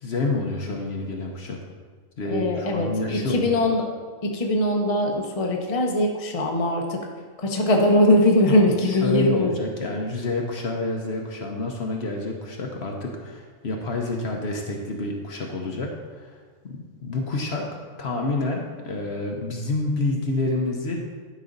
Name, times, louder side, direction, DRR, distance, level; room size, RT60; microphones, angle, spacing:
voice 1, 0.0-1.6 2.2-3.5 8.5-16.3 17.0-17.7 18.0-21.0, left 2 dB, 55° left, 1 dB, 1.1 m, -28 dB
voice 2, 2.2-3.9 4.2-7.1 7.4-9.6, left 1 dB, 30° left, 1 dB, 0.9 m, -21 dB
11.5 x 5.4 x 4.0 m, 1.5 s
omnidirectional pair, 1.4 m